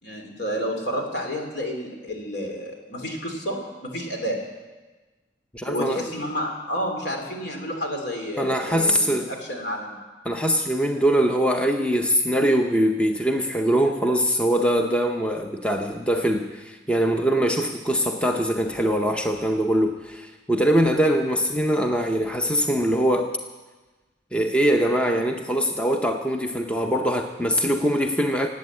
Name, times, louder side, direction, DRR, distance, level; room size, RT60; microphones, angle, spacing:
voice 1, 0.0-4.4 5.6-10.0, equal, 70° left, 2 dB, 3.1 m, -30 dB
voice 2, 5.5-6.0 8.4-9.3 10.3-23.3 24.3-28.5, equal, 5° left, 4 dB, 0.6 m, -22 dB
18.5 x 8.6 x 8.2 m, 1.3 s
head